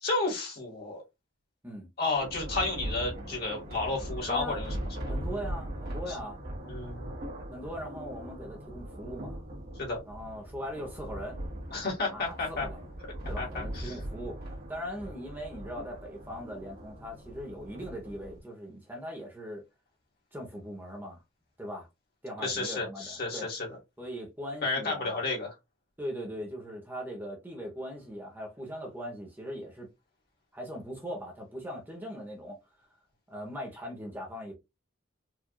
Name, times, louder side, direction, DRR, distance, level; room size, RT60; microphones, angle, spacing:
voice 1, 0.0-1.0 2.0-4.7 5.0-5.1 6.1-6.2 6.6-7.1 9.8-10.0 11.7-12.7 13.4-14.0 22.4-23.7 24.6-25.5, left 3 dB, 50° left, 1.9 m, -32 dB
Thunder, 2.2-18.4, right 1 dB, 50° right, 1.8 m, -40 dB
voice 2, 4.3-4.6 5.1-6.4 7.5-9.4 10.0-11.4 12.1-12.9 13.3-19.7 20.3-21.2 21.6-21.9 22.2-23.5 24.0-25.2 26.0-29.9 30.5-32.6 33.3-34.5, equal, 10° right, 0.9 m, -40 dB
4.6 x 2.6 x 2.3 m
head